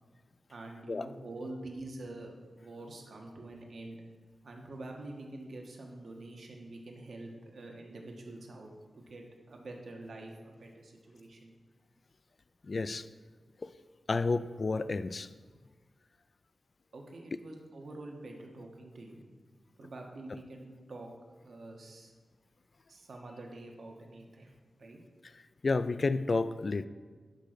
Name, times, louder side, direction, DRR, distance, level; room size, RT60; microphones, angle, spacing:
voice 1, 0.5-4.0 4.4-11.6 16.9-19.2 19.8-22.1 22.9-24.5 24.8-25.0, right 2 dB, 65° right, 1 dB, 1.3 m, -46 dB
voice 2, 12.7-13.1 13.6-13.7 14.1-15.3 25.6-26.9, left 3 dB, 45° left, 14 dB, 0.3 m, -30 dB
10.5 x 3.8 x 6.6 m, 1.5 s
wide cardioid pair, 130°, 0 cm